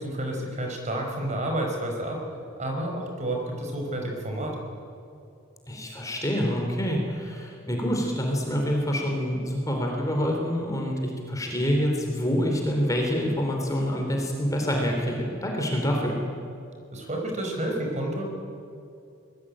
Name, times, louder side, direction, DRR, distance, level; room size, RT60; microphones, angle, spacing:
voice 1, 0.0-2.2 2.6-4.5 16.9-18.2, right 1 dB, 35° right, 1 dB, 5.1 m, -30 dB
voice 2, 5.7-16.2, equal, 15° left, 1 dB, 3.3 m, -26 dB
25.5 x 20.0 x 8.8 m, 2.5 s
head